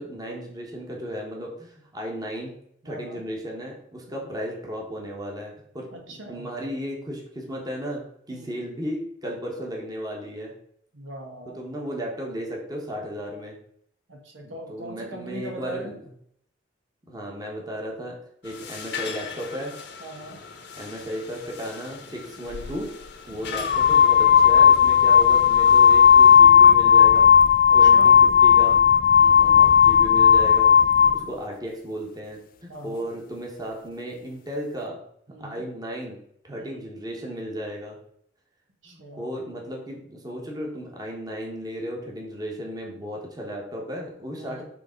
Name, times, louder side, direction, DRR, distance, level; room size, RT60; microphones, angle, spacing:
voice 1, 0.0-2.5 2.8-8.0 8.3-10.5 11.5-13.5 14.4-16.1 17.1-18.2 18.4-19.7 20.7-22.9 23.3-27.3 27.7-28.8 29.4-30.7 31.1-35.0 35.4-36.2 36.4-38.0 38.9-44.6, equal, 20° right, -1 dB, 1.4 m, -34 dB
voice 2, 2.8-3.2 4.1-4.2 5.9-6.5 8.3-8.6 10.9-11.6 14.1-15.9 20.0-20.4 23.3-23.7 27.7-28.2 29.1-29.6 31.0-31.3 32.7-33.0 35.3-35.6 36.5-36.8 38.8-39.3 44.4-44.6, right 1 dB, 75° right, 1 dB, 1.5 m, -41 dB
sound 1, 18.4-26.4, left 6 dB, 60° left, 1.0 m, -41 dB
sound 2, 22.5-22.7 23.5-31.2, left 7 dB, 45° left, 0.4 m, -15 dB
6.9 x 3.6 x 5.2 m, 0.70 s
head